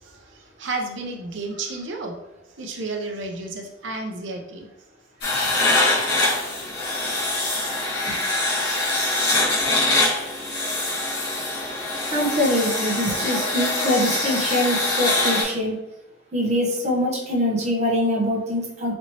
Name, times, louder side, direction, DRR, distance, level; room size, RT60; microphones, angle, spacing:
voice 1, 0.6-2.1 2.6-4.7, right 3 dB, 80° right, 2 dB, 0.7 m, -31 dB
sound 1, 5.2-15.4, left 2 dB, 60° left, 1.4 m, -23 dB
voice 2, 12.1-15.8 16.3-18.9, left 1 dB, 35° right, -2 dB, 0.9 m, -23 dB
4.2 x 2.9 x 2.9 m, 0.93 s
head